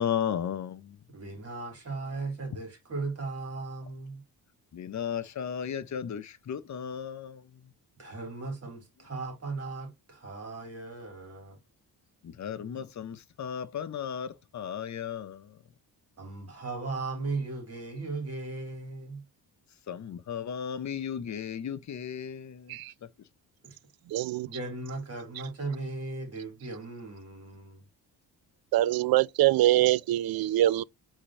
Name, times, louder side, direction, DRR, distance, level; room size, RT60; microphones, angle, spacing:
voice 1, 0.0-1.0 4.7-7.4 12.2-15.5 19.9-22.8, left 8 dB, 45° left, 0.8 m, -35 dB
voice 2, 1.1-4.2 8.0-11.6 12.8-12.9 16.2-19.2 23.6-23.8 24.4-27.8, right 3 dB, 40° right, 3.0 m, -37 dB
voice 3, 24.1-24.5 28.7-30.8, right 14 dB, 65° right, 0.5 m, -24 dB
5.1 x 3.7 x 2.9 m
cardioid pair, 105°, 39 cm